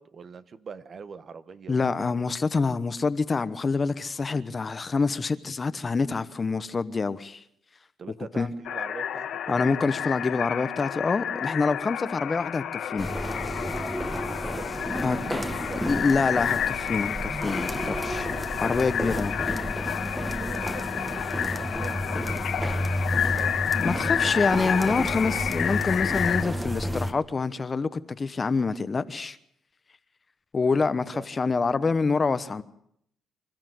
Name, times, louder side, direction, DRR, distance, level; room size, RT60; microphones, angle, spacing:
voice 1, 0.0-2.1 8.0-9.7 14.4-16.4 18.8-19.2 20.1-23.1 23.4-23.6 23.9-24.8 31.1-31.3, right 5 dB, 45° right, 1.2 m, -43 dB
voice 2, 1.7-7.4 8.4-8.5 9.5-13.1 15.0-15.4 15.8-19.3 23.7-29.4 30.5-32.6, left 4 dB, 30° left, 1.0 m, -26 dB
sound 1, 8.6-26.4, left 9 dB, 70° left, 1.3 m, -30 dB
sound 2, 13.0-27.1, equal, 10° right, 1.5 m, -31 dB
26.5 x 13.5 x 7.8 m
cardioid pair, 90°, 0 cm